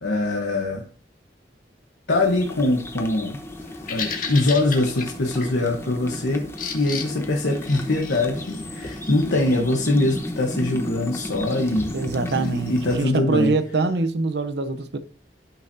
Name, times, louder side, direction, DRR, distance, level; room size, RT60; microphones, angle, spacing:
voice 1, 0.0-0.8 2.1-3.4 3.9-11.9 12.7-13.6, left 2 dB, 90° left, 1.1 m, -23 dB
sound 1, 2.1-13.0, left 1 dB, 15° left, 0.9 m, -34 dB
Bird vocalization bird call bird song, 3.6-13.0, left 5 dB, 50° left, 1.7 m, -37 dB
voice 2, 11.9-15.0, right 3 dB, 70° right, 0.7 m, -24 dB
12.0 x 5.7 x 2.7 m
head